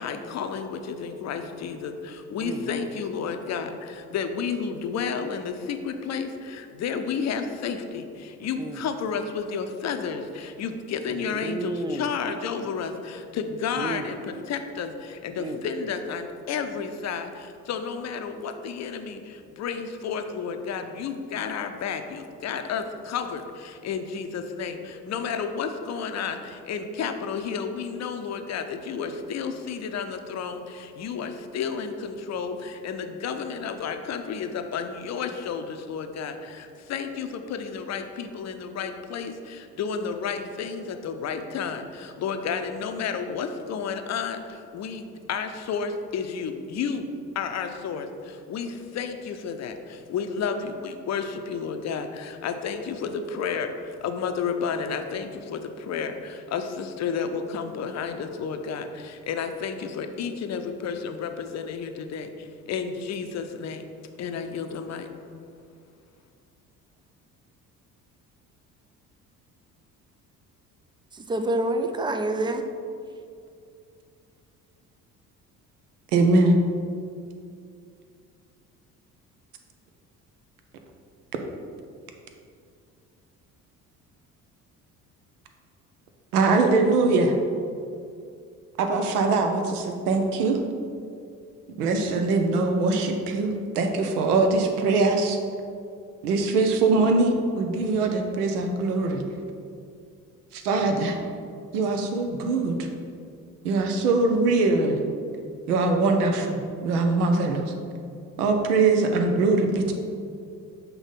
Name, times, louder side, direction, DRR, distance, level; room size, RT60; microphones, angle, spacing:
voice 1, 0.0-47.1 47.3-63.8 64.2-65.1, left 6 dB, 35° left, 7 dB, 0.6 m, -31 dB
voice 2, 2.4-2.8 8.6-8.8 11.1-12.1 13.8-14.1 15.4-15.6 71.1-72.6, right 2 dB, 10° right, 6 dB, 0.3 m, -29 dB
voice 3, 76.1-76.6 86.3-87.4 88.8-90.6 91.8-95.4 96.2-99.2 100.5-101.2 101.7-102.8 103.6-105.0 105.7-107.7 108.4-109.9, right 3 dB, 75° right, 4 dB, 0.8 m, -22 dB
6.0 x 4.0 x 5.2 m, 2.4 s
figure-of-eight pair, 50°, 46 cm